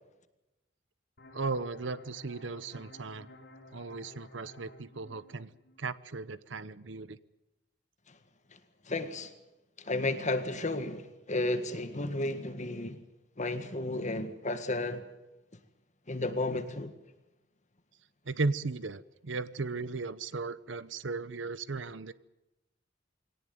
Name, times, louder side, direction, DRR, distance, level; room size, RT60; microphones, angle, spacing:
sound 1, 1.2-6.6, left 1 dB, 60° left, 4.3 m, -54 dB
voice 1, 1.3-3.3 3.7-5.5 5.8-7.2 18.3-22.1, right 3 dB, 75° right, 0.8 m, -36 dB
voice 2, 8.9-9.3 9.8-13.0 13.4-15.0 16.1-16.9, left 2 dB, 40° left, 1.8 m, -33 dB
23.0 x 18.0 x 9.5 m
head